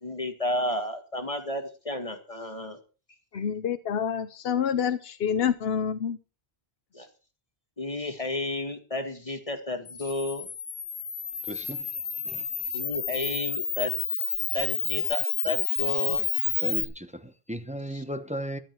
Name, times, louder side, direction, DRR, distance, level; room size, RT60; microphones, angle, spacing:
voice 1, 0.0-2.8 3.3-3.4 6.9-7.1 7.8-10.5 11.5-11.7 12.7-14.2 14.5-16.3 17.9-18.0, left 1 dB, 35° left, 2.0 m, -32 dB
voice 2, 3.3-6.2, left 8 dB, 70° left, 1.0 m, -27 dB
Camera, 9.9-16.9, left 6 dB, 85° left, 1.4 m, -30 dB
voice 3, 11.5-11.9 12.2-12.5 16.6-18.6, equal, 5° right, 1.0 m, -35 dB
14.5 x 12.0 x 4.5 m
omnidirectional pair, 1.0 m